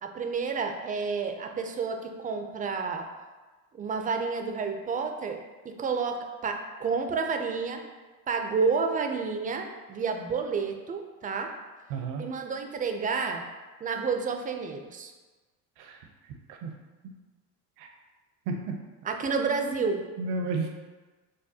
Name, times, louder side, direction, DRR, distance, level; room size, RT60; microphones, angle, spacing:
voice 1, 0.0-3.1 3.7-5.4 5.6-7.8 8.3-11.5 12.2-13.4 13.8-15.1 19.0-20.0, right 5 dB, 25° right, 5 dB, 0.3 m, -30 dB
voice 2, 11.9-12.2 15.8-16.1 16.5-16.7 17.8-17.9 18.5-18.8 20.2-20.7, right 3 dB, 80° right, 3 dB, 0.7 m, -32 dB
6.4 x 2.2 x 2.7 m, 1.3 s
supercardioid pair, 105°, 38 cm